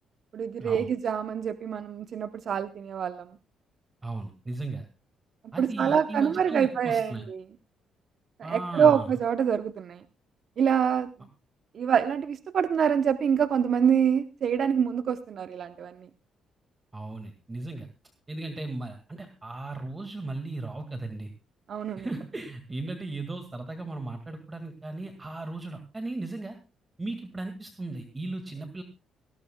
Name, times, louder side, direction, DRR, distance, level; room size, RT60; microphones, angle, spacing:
voice 1, 0.3-3.3 5.6-7.4 8.4-10.0 10.6-11.1 11.7-16.1 21.7-22.1, right 7 dB, 60° right, 10 dB, 0.8 m, -25 dB
voice 2, 4.0-4.9 5.5-7.2 8.4-9.1 16.9-17.9 18.3-21.3 22.0-26.6 27.0-28.8, right 2 dB, 20° right, 6 dB, 1.9 m, -36 dB
18.5 x 17.0 x 2.3 m, 0.29 s
cardioid pair, 90°, 0 cm